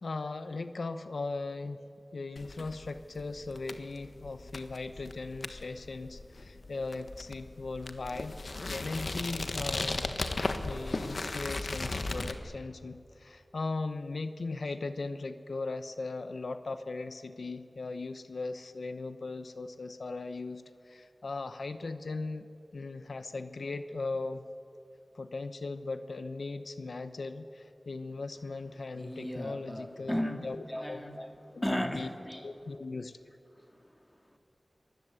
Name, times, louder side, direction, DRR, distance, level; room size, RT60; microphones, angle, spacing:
voice 1, 0.0-1.8 2.1-8.4 8.7-10.2 10.6-22.5 22.7-24.4 25.1-31.0 31.5-31.7 31.9-32.1 32.4-33.1, left 3 dB, 80° left, 10 dB, 0.9 m, -38 dB
sound 1, 2.4-12.3, left 2 dB, 60° left, 1.4 m, -37 dB
voice 2, 28.9-32.5 32.8-32.9 33.6-34.4, equal, 10° left, 5 dB, 2.2 m, -36 dB
24.5 x 20.0 x 8.3 m, 2.6 s
wide cardioid pair, 80°, 0 cm